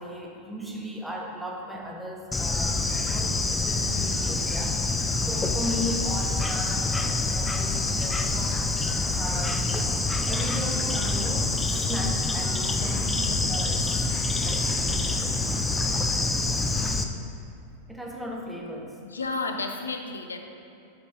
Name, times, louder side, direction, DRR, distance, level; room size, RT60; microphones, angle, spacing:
voice 1, 0.0-4.8 5.3-9.8 10.3-13.9 14.3-15.2 17.9-19.0, equal, 5° right, -1 dB, 0.9 m, -37 dB
Bird / Insect, 2.3-17.0, left 3 dB, 10° left, 0.4 m, -26 dB
voice 2, 19.0-20.4, left 3 dB, 75° left, 5 dB, 0.5 m, -32 dB
7.8 x 5.1 x 3.3 m, 2.6 s
figure-of-eight pair, 90°, 0 cm